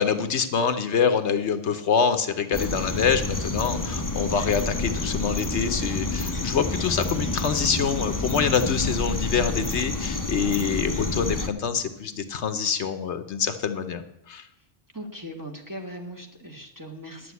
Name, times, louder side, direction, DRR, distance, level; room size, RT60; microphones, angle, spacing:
voice 1, 0.0-14.0 14.3-14.5, left 6 dB, 70° left, 9 dB, 1.1 m, -25 dB
sound 1, 2.5-11.5, left 2 dB, 20° left, 0.7 m, -29 dB
voice 2, 14.9-17.3, equal, 15° right, 1 dB, 1.5 m, -39 dB
10.5 x 7.8 x 8.2 m, 0.80 s
omnidirectional pair, 1.2 m